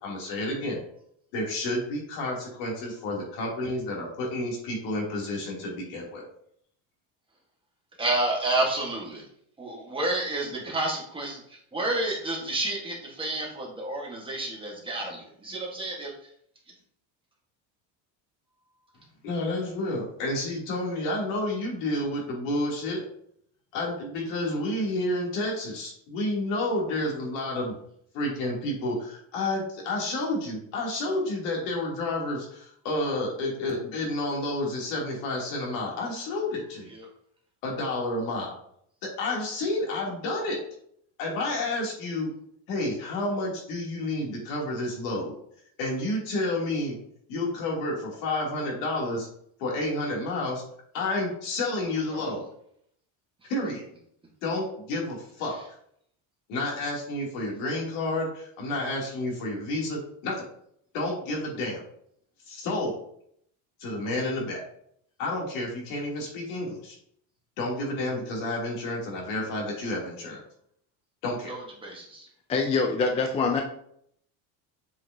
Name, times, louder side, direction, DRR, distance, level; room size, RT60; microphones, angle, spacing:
voice 1, 0.0-0.8 1.3-6.2 19.2-23.0 23.7-27.7 28.1-36.9 37.6-38.6 39.2-40.6 41.2-42.3 42.7-45.3 45.8-46.9 47.3-49.3 49.6-50.6 50.9-52.5 53.5-53.8 54.4-55.6 56.5-60.5 60.9-61.8 62.5-63.0 63.8-64.6 65.2-67.0 67.6-70.4 71.2-71.5, left 2 dB, 80° left, -2 dB, 3.0 m, -30 dB
voice 2, 8.0-9.3 9.6-16.3 36.9-37.1 52.1-52.3 71.5-72.3, right 2 dB, 10° right, -2 dB, 1.4 m, -30 dB
voice 3, 72.5-73.6, left 4 dB, 15° left, 3 dB, 0.4 m, -24 dB
7.6 x 5.7 x 2.8 m, 0.67 s
cardioid pair, 170°, 43 cm